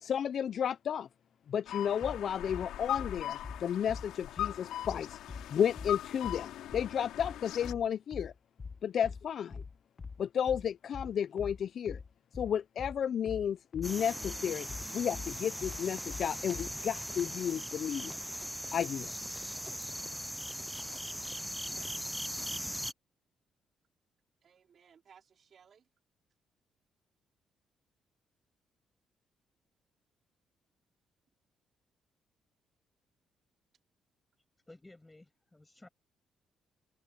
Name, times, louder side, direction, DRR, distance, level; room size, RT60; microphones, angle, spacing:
voice 1, 0.0-1.1 1.5-5.2 5.5-8.3 8.8-9.6 10.2-12.0 12.3-14.7 14.9-18.2 18.7-19.1, left 8 dB, 60° left, 0.5 m, -32 dB
sound 1, 1.7-7.7, left 12 dB, 85° left, 2.9 m, -40 dB
sound 2, 2.0-16.8, left 4 dB, 30° left, 1.0 m, -44 dB
sound 3, 13.8-22.9, equal, ahead, 0.4 m, -39 dB
voice 2, 21.3-21.9 24.4-25.9, right 7 dB, 55° right, 4.7 m, -62 dB
voice 3, 34.7-35.9, left 2 dB, 15° left, 6.1 m, -55 dB
cardioid pair, 90°, 0 cm